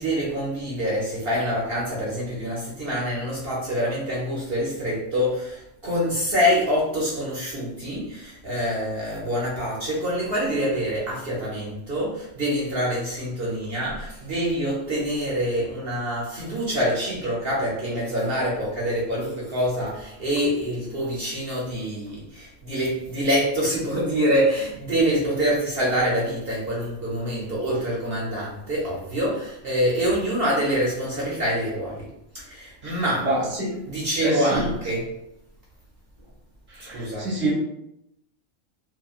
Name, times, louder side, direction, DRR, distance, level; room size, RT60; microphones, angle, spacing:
voice 1, 0.0-32.1 32.3-33.3 33.9-35.1 36.8-37.3, equal, 55° right, -5 dB, 0.8 m, -26 dB
voice 2, 33.2-33.8 34.2-34.7 36.7-37.5, right 1 dB, 10° right, -6 dB, 0.8 m, -26 dB
2.9 x 2.2 x 2.3 m, 0.80 s
omnidirectional pair, 1.3 m